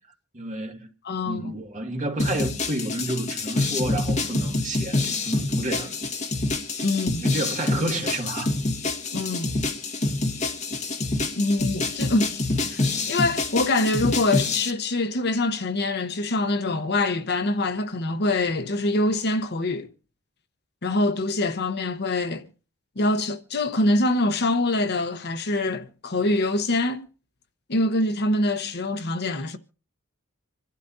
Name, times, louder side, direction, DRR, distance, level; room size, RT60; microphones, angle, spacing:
voice 1, 0.3-0.9 1.2-6.0 7.2-8.5, right 1 dB, 35° right, 2.1 m, -30 dB
voice 2, 1.0-1.5 6.8-7.2 9.1-9.6 11.4-19.9 20.8-22.5 23.0-27.1 27.7-29.6, left 2 dB, 50° left, 1.0 m, -24 dB
sound 1, 2.2-14.7, left 2 dB, 35° left, 1.6 m, -27 dB
27.0 x 12.5 x 2.7 m
head